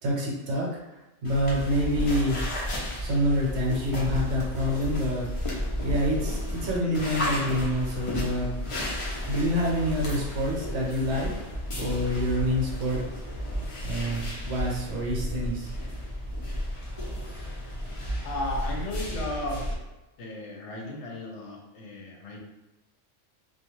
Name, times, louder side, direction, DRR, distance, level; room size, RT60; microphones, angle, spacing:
voice 1, 0.0-2.4 3.0-5.5 5.8-8.7 9.2-11.3 11.8-13.0 13.8-15.7, equal, 65° right, -3 dB, 1.0 m, -27 dB
sound 1, 1.2-19.7, equal, 45° left, 0.4 m, -32 dB
voice 2, 18.2-19.7 20.2-22.4, left 1 dB, 65° left, 0 dB, 0.9 m, -35 dB
2.3 x 2.3 x 3.0 m, 0.99 s
omnidirectional pair, 1.4 m